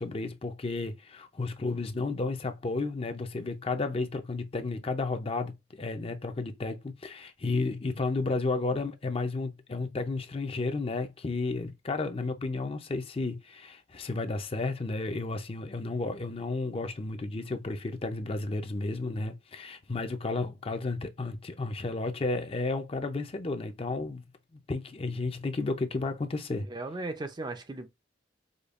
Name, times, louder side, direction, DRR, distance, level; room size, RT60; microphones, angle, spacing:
voice 1, 0.0-24.2 24.7-26.7, left 3 dB, 30° left, 0.5 m, -32 dB
voice 2, 26.6-27.9, right 2 dB, 25° right, 0.4 m, -37 dB
5.1 x 2.3 x 2.4 m
head